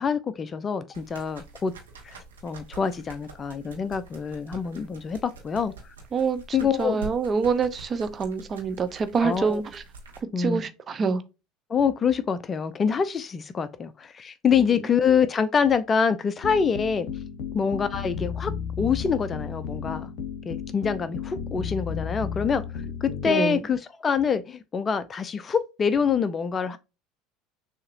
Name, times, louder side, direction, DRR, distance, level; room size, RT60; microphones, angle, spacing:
voice 1, 0.0-1.7 2.0-5.7 6.5-7.0 9.2-9.6 10.3-10.7 11.7-17.1 17.5-18.5 18.8-20.1 20.5-22.6 23.0-26.8, left 6 dB, 30° left, 0.5 m, -25 dB
sound 1, 0.9-10.2, right 4 dB, 80° right, 1.3 m, -45 dB
voice 2, 6.1-9.8 10.4-11.2 14.6-14.9 23.3-23.6, right 5 dB, 30° right, 0.8 m, -26 dB
sound 2, 16.4-23.3, left 7 dB, 60° left, 1.0 m, -33 dB
6.5 x 2.9 x 2.6 m
figure-of-eight pair, 70°, 0 cm